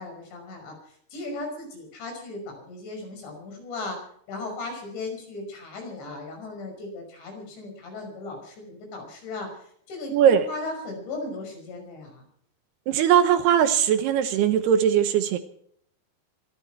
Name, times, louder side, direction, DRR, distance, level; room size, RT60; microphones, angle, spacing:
voice 1, 0.0-12.3, left 2 dB, 75° left, 3 dB, 8.0 m, -37 dB
voice 2, 10.1-10.4 12.9-15.4, right 9 dB, 70° right, 10 dB, 2.8 m, -20 dB
25.0 x 12.5 x 4.6 m, 0.65 s
omnidirectional pair, 5.2 m